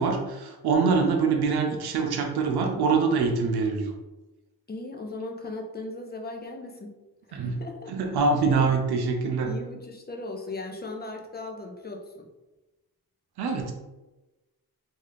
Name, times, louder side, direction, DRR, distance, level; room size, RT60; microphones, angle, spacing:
voice 1, 0.0-3.9 7.3-7.5 7.9-9.5 13.4-13.7, right 4 dB, 85° right, 3 dB, 0.6 m, -24 dB
voice 2, 4.7-6.9 7.3-8.1 8.6-8.8 9.2-12.3, left 2 dB, 25° left, 2 dB, 0.6 m, -38 dB
2.8 x 2.3 x 3.2 m, 1.1 s
cardioid pair, 70°, 38 cm